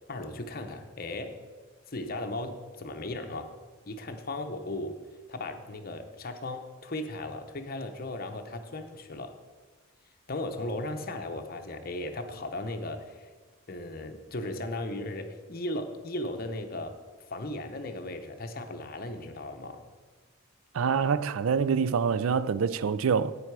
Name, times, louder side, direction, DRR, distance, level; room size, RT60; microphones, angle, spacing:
voice 1, 0.1-1.4 1.9-3.5 3.9-5.0 5.3-9.4 10.3-13.3 13.7-17.0 17.3-19.9, left 2 dB, 45° left, 0.9 m, -36 dB
voice 2, 20.7-23.3, right 6 dB, 75° right, 0.4 m, -26 dB
10.5 x 8.5 x 4.7 m
head